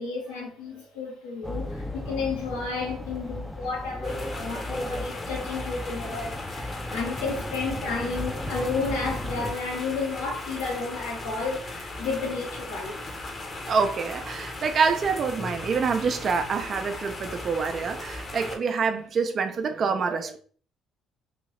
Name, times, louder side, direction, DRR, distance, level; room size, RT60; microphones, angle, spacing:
voice 1, 0.0-13.0, left 4 dB, 80° left, 1.0 m, -32 dB
sound 1, 1.4-9.5, left 1 dB, 5° left, 0.5 m, -36 dB
sound 2, 4.0-18.6, left 2 dB, 40° left, 0.9 m, -37 dB
voice 2, 13.7-20.4, right 5 dB, 50° right, 0.5 m, -26 dB
3.3 x 2.7 x 3.1 m
hypercardioid pair, 50°, 0 cm